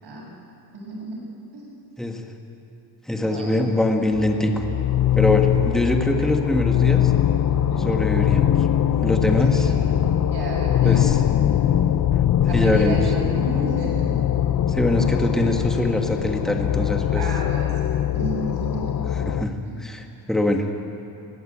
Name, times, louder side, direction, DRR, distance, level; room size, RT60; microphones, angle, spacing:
voice 1, 0.7-1.2 1.5-1.7 3.2-3.5 7.7-8.0 9.4-10.0 10.3-11.0 11.4-11.7 12.5-14.0 17.2-17.7 18.1-19.1 19.7-19.8, right 1 dB, 65° right, -2 dB, 7.2 m, -32 dB
voice 2, 3.1-4.7 5.2-7.1 7.8-8.5 9.0-9.7 10.8-11.2 12.5-13.1 14.7-17.3 19.1-20.7, left 1 dB, ahead, 3 dB, 1.5 m, -23 dB
sound 1, 4.1-19.5, left 10 dB, 45° left, 0.7 m, -21 dB
22.0 x 17.5 x 8.6 m, 2.8 s
cardioid pair, 155°, 44 cm